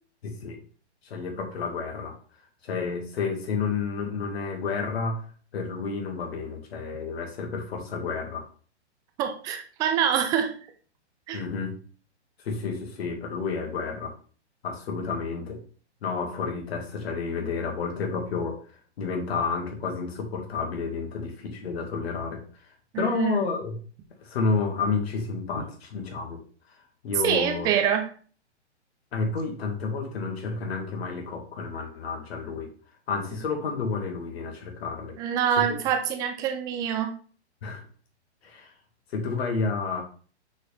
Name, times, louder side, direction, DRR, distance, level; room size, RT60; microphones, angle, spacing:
voice 1, 0.2-0.6 1.0-2.2 2.6-5.3 5.5-8.5 11.3-11.8 12.4-14.1 14.6-15.6 16.0-18.6 19.0-22.6 23.0-23.8 24.2-26.4 26.7-26.8 27.0-27.7 29.1-32.7 33.1-35.2 35.7-35.8 37.6-37.8 38.4-38.7 39.1-40.0, left 4 dB, 60° left, 3 dB, 2.0 m, -30 dB
voice 2, 9.2-10.5 11.3-11.4 22.9-23.5 27.2-28.1 35.2-37.1, right 8 dB, 10° right, 6 dB, 0.4 m, -25 dB
6.3 x 4.7 x 3.4 m, 0.41 s
hypercardioid pair, 135°, 34 cm